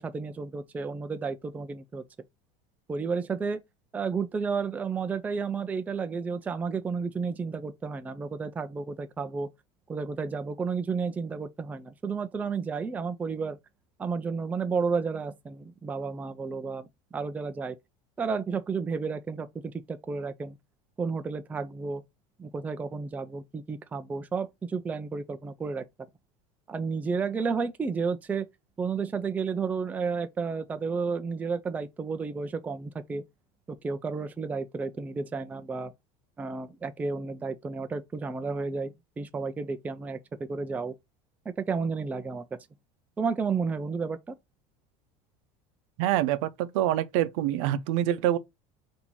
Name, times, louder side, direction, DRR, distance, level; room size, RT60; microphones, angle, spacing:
voice 1, 0.0-2.0 2.9-3.6 3.9-9.5 9.9-13.6 14.0-17.8 18.2-19.5 19.9-20.6 21.0-22.0 22.4-25.8 26.7-28.5 28.8-33.2 33.7-35.9 36.4-40.9 41.7-42.4 43.2-44.3, right 5 dB, 10° right, 0.3 m, -32 dB
voice 2, 46.0-48.4, right 12 dB, 75° right, 0.6 m, -26 dB
4.3 x 2.7 x 4.1 m
supercardioid pair, 145°, 17 cm